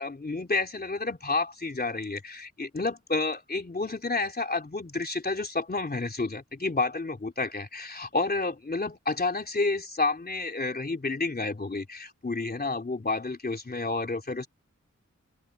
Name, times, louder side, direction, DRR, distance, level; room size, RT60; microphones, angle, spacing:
voice 1, 0.0-14.5, left 3 dB, 35° left, 3.4 m, -30 dB
wide cardioid pair, 90°, 29 cm